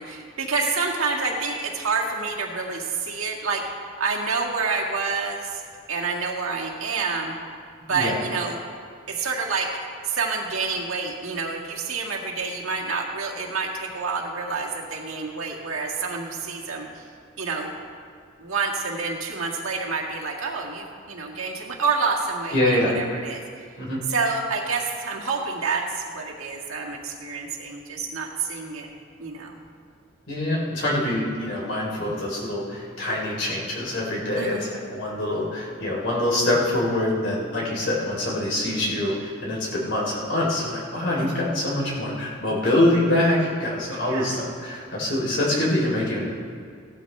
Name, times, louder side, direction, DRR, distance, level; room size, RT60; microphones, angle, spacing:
voice 1, 0.0-3.6 4.0-5.6 5.9-7.4 7.8-8.6 9.1-9.7 10.0-17.1 17.4-17.7 18.4-23.7 24.1-28.9 29.2-29.6 34.4-34.8 41.2-41.5 43.9-44.4, right 4 dB, 90° right, -2 dB, 1.9 m, -28 dB
voice 2, 22.5-22.9 23.8-24.0 30.3-46.3, left 1 dB, 55° left, -4 dB, 3.5 m, -25 dB
17.0 x 12.0 x 3.3 m, 2.1 s
head